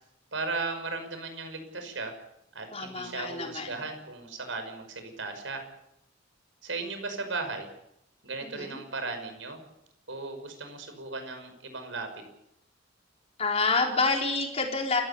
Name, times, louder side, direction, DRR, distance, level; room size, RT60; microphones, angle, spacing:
voice 1, 0.3-2.2 2.5-5.6 6.6-7.7 8.2-9.6 10.1-12.2, right 3 dB, 75° right, 7 dB, 5.7 m, -36 dB
voice 2, 2.7-3.8 8.4-8.8 13.4-15.0, left 3 dB, 35° left, 1 dB, 4.4 m, -28 dB
28.5 x 16.0 x 7.0 m, 0.81 s
head